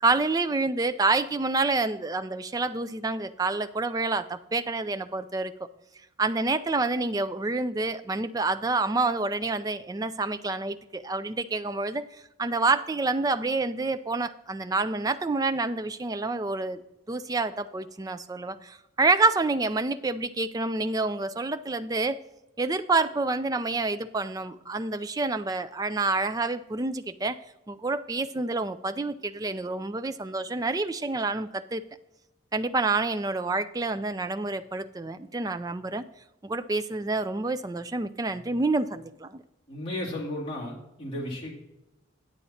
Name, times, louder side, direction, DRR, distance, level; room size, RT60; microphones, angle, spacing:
voice 1, 0.0-5.5 6.2-12.1 12.4-16.8 17.1-22.2 22.6-27.4 27.7-31.8 32.5-36.1 36.4-39.4, right 3 dB, 20° right, 11 dB, 0.3 m, -28 dB
voice 2, 39.7-41.5, left 1 dB, 25° left, -4 dB, 2.3 m, -34 dB
9.0 x 8.5 x 4.1 m, 0.92 s
head